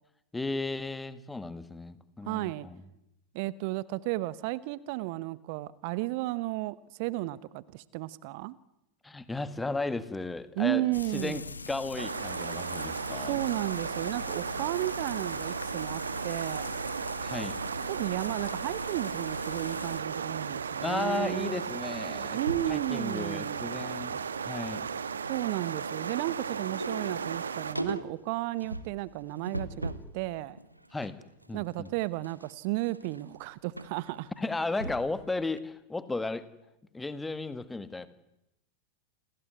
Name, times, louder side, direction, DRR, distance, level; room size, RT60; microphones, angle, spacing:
voice 1, 0.3-2.8 9.0-10.8 11.1-13.4 17.2-17.6 20.8-22.4 22.7-24.9 30.9-31.2 31.5-31.9 34.4-36.5 36.9-38.1, left 3 dB, 10° left, 14 dB, 1.8 m, -34 dB
voice 2, 2.2-2.7 3.3-8.6 10.6-11.5 13.2-16.7 17.9-21.5 22.3-23.6 25.3-30.6 31.5-34.3, right 18 dB, 45° right, 19 dB, 1.0 m, -33 dB
Frying (food), 10.9-20.0, left 4 dB, 75° left, 1.1 m, -42 dB
sound 1, 12.0-27.7, right 6 dB, 70° right, 1.4 m, -35 dB
sound 2, 19.3-21.2 21.4-21.7 22.0-22.8 23.3-24.0 24.3-30.2 30.6-35.2 35.6-35.7, right 1 dB, 85° right, 1.7 m, -41 dB
28.5 x 20.5 x 9.5 m, 0.90 s
figure-of-eight pair, 90°, 0 cm